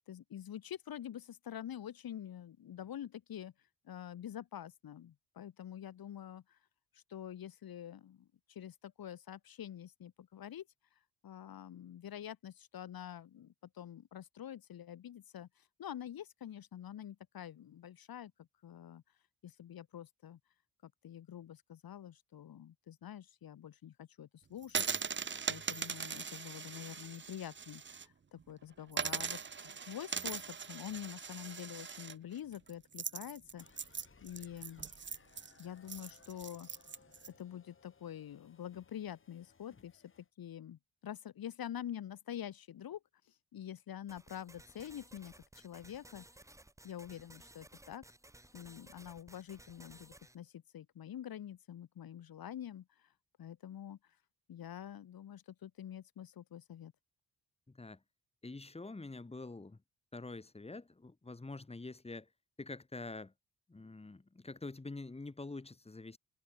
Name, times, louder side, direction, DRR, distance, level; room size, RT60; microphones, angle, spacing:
voice 1, 0.0-6.6 6.9-10.7 10.9-19.0 19.4-20.4 20.8-34.9 35.6-36.7 37.4-46.2 46.8-48.1 48.5-53.1 53.4-54.2 54.5-56.9, left 10 dB, 70° left, 2.2 m, -47 dB
sound 1, 24.6-28.1 28.4-28.5 28.9-37.3, right 6 dB, 30° right, 1.2 m, -40 dB
sound 2, 33.6-40.3, left 5 dB, 30° left, 7.2 m, -64 dB
sound 3, 44.1-50.4, right 1 dB, 10° right, 3.5 m, -58 dB
voice 2, 57.7-58.0 58.4-59.8 60.1-62.3 62.6-63.3 63.7-66.2, left 3 dB, 15° left, 4.5 m, -46 dB
open air
wide cardioid pair, 165°, 38 cm